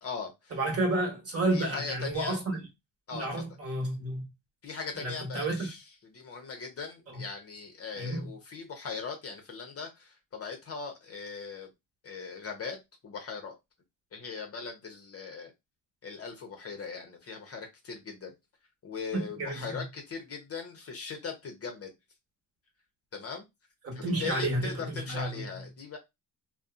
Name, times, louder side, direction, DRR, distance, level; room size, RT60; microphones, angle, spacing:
voice 1, 0.0-0.5 1.5-2.4 3.1-3.3 4.6-5.8 6.1-11.7 12.0-12.8 13.0-13.5 14.1-15.5 16.0-18.3 18.8-21.9 23.1-23.5 23.9-26.0, left 5 dB, 35° left, 0.7 m, -39 dB
voice 2, 0.5-2.6 3.1-4.3 4.9-5.7 7.1-7.2 7.9-8.3 19.1-19.8 23.8-25.5, right 2 dB, 35° right, 1.2 m, -31 dB
2.6 x 2.1 x 2.4 m
cardioid pair, 100°, 41 cm